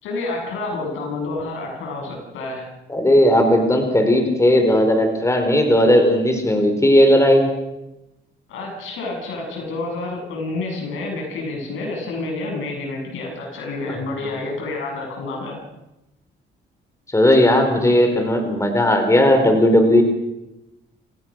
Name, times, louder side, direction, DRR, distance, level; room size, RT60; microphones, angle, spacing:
voice 1, 0.0-2.7 8.5-15.6, left 2 dB, 85° left, 1 dB, 7.4 m, -29 dB
voice 2, 2.9-7.5 17.1-20.0, left 1 dB, 15° left, 5 dB, 4.4 m, -16 dB
28.0 x 16.0 x 6.4 m, 0.93 s
cardioid pair, 90°, 20 cm